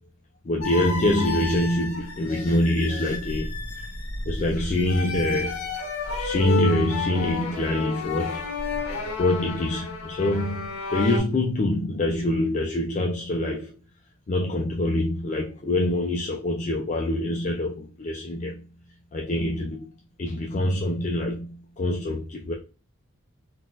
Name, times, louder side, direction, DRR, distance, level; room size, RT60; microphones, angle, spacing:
voice 1, 0.5-3.5 4.3-5.7 6.1-8.4 9.2-13.7 14.3-18.6 19.1-19.9 20.2-21.5 21.8-22.5, left 1 dB, 35° left, 0.3 m, -25 dB
sound 1, 0.6-11.2, left 3 dB, 85° left, 1.3 m, -31 dB
3.8 x 2.4 x 2.5 m
head